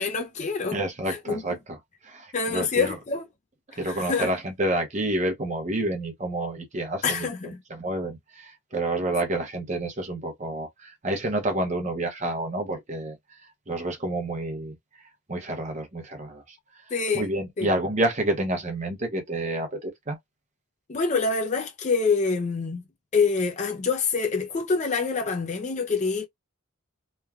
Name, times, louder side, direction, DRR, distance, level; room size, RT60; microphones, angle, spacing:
voice 1, 0.0-0.8 1.1-1.4 2.3-3.3 3.9-4.3 7.0-7.6 16.9-17.3 17.6-17.7 20.9-22.8 23.1-26.2, left 4 dB, 35° left, 0.4 m, -26 dB
voice 2, 0.7-1.8 2.0-3.0 3.8-14.8 15.3-20.2, right 1 dB, 35° right, 0.7 m, -29 dB
3.0 x 2.3 x 2.3 m
head